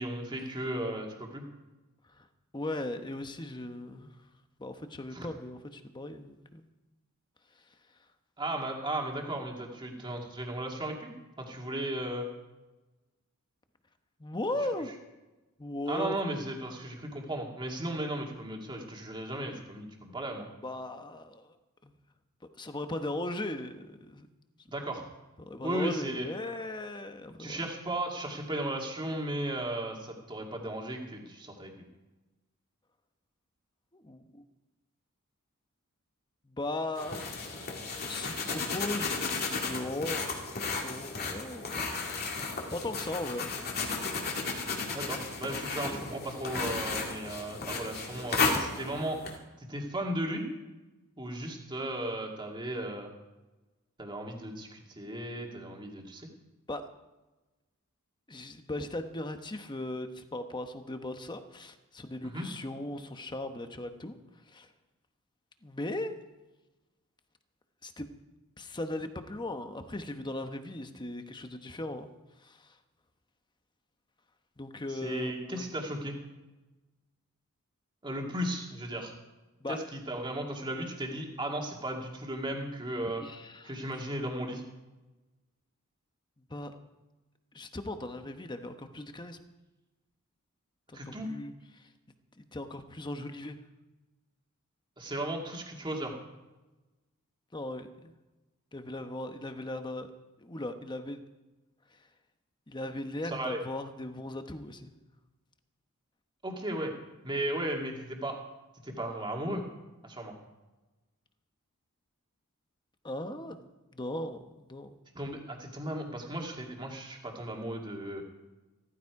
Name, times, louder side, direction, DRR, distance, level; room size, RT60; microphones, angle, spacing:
voice 1, 0.0-1.4 5.1-5.3 8.4-11.1 11.4-12.3 15.9-20.5 24.7-25.1 25.6-26.3 27.4-31.7 44.9-49.2 49.6-50.5 51.2-53.1 54.0-56.3 62.3-62.5 75.0-76.2 78.0-79.1 79.7-83.2 83.6-84.6 90.9-91.3 95.0-96.1 103.3-103.6 106.4-106.9 107.2-108.4 108.8-109.6 110.0-110.4 115.1-118.2, right 1 dB, 20° right, 1 dB, 2.2 m, -35 dB
voice 2, 2.5-4.1 4.6-6.7 14.2-14.9 15.6-16.2 20.6-21.5 21.8-21.9 22.6-24.3 25.4-27.7 33.9-34.4 36.4-37.7 38.0-40.3 40.7-41.9 42.4-43.5 45.8-46.1 56.7-56.9 58.3-64.2 64.5-64.7 65.6-66.2 67.8-68.1 68.6-72.1 72.4-72.8 74.6-75.7 79.6-79.8 83.2-83.8 86.5-86.8 87.5-89.4 90.9-91.9 92.4-93.6 97.5-98.1 98.7-100.1 100.4-101.2 102.7-104.9 113.0-115.0, left 1 dB, 20° left, 8 dB, 1.0 m, -38 dB
sound 1, 37.0-49.4, left 4 dB, 45° left, 2.4 m, -34 dB
15.0 x 14.5 x 4.8 m, 1.1 s
head